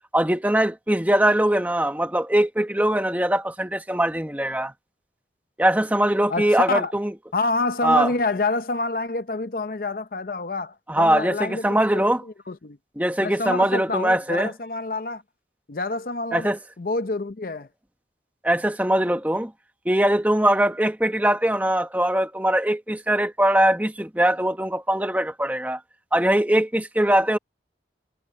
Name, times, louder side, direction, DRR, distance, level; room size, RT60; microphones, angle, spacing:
voice 1, 0.1-4.7 5.6-7.1 7.8-8.1 10.9-12.2 13.0-14.5 16.3-16.6 18.4-19.5 19.8-25.8 26.1-27.4, right 1 dB, 10° right, 1.2 m, -21 dB
voice 2, 6.3-6.9 7.3-11.8 12.5-12.8 13.2-15.2 15.7-16.5 16.8-17.7, left 3 dB, 55° left, 0.7 m, -27 dB
head